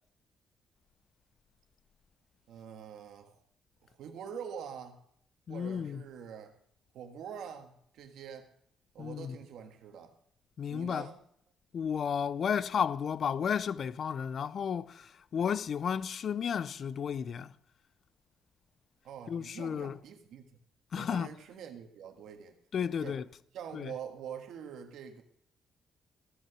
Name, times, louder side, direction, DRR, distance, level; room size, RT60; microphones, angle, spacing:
voice 1, 2.5-3.4 3.8-5.0 5.5-6.6 6.9-8.5 8.9-10.1 10.7-11.2 19.0-20.5 21.0-22.6 22.9-23.2 23.5-25.2, right 8 dB, 80° right, 1.4 m, -45 dB
voice 2, 5.5-6.1 9.0-9.4 10.6-11.1 11.7-17.5 19.3-20.0 20.9-21.3 22.7-23.3 23.7-24.0, left 7 dB, 55° left, 0.4 m, -33 dB
14.5 x 6.4 x 6.1 m
cardioid pair, 90°, 0 cm